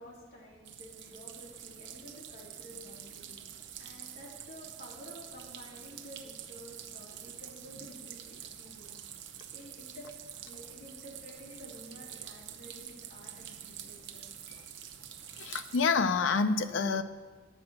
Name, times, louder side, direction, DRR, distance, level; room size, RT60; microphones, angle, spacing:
voice 1, 0.0-3.3 3.8-9.1 9.5-10.1 10.4-14.3, equal, 55° left, -4 dB, 3.0 m, -51 dB
sound 1, 0.6-15.8, right 10 dB, 65° right, 0.7 m, -47 dB
voice 2, 15.4-17.0, left 4 dB, 75° left, 10 dB, 0.6 m, -27 dB
9.1 x 8.7 x 6.1 m, 1.4 s
head